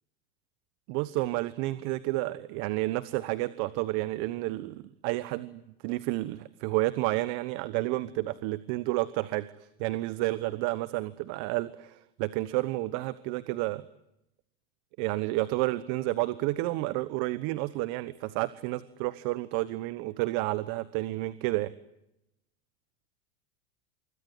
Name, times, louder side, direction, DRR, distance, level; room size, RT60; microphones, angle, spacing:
voice 1, 0.9-9.5 9.8-13.8 15.0-21.7, right 19 dB, 55° right, 15 dB, 1.2 m, -30 dB
25.5 x 23.0 x 9.8 m, 0.87 s
supercardioid pair, 125°, 32 cm